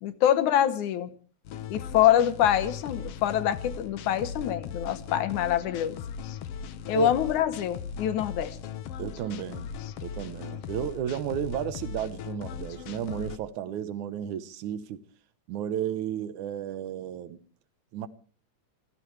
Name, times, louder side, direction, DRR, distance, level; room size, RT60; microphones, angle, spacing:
voice 1, 0.0-1.1 1.7-6.0 6.9-8.6, left 11 dB, 90° left, 2.7 m, -25 dB
sound 1, 1.4-13.4, left 7 dB, 65° left, 1.7 m, -38 dB
voice 2, 9.0-15.0 15.5-17.4 17.9-18.1, right 10 dB, 85° right, 2.5 m, -33 dB
27.0 x 15.5 x 3.3 m
omnidirectional pair, 3.4 m